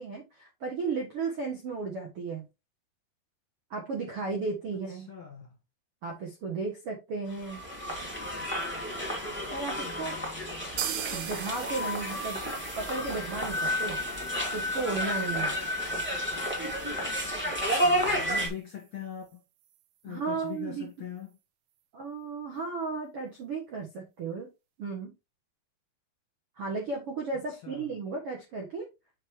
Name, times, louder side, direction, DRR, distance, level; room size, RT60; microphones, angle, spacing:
voice 1, 0.0-2.4 3.7-5.1 6.0-7.6 9.5-10.2 11.1-12.4 12.8-14.0 14.5-15.5 20.1-20.9 21.9-24.5 24.8-25.1 26.6-28.9, right 4 dB, 60° right, 1.5 m, -34 dB
voice 2, 4.9-5.6 9.8-10.7 17.4-19.4 20.0-21.3 27.5-27.9, left 9 dB, 45° left, 2.1 m, -42 dB
sound 1, 7.3-18.5, equal, 5° right, 2.2 m, -31 dB
sound 2, 10.8-18.5 18.8-18.9 19.2-19.3 19.7-19.8, right 10 dB, 90° right, 3.1 m, -42 dB
7.1 x 7.0 x 3.1 m
omnidirectional pair, 4.6 m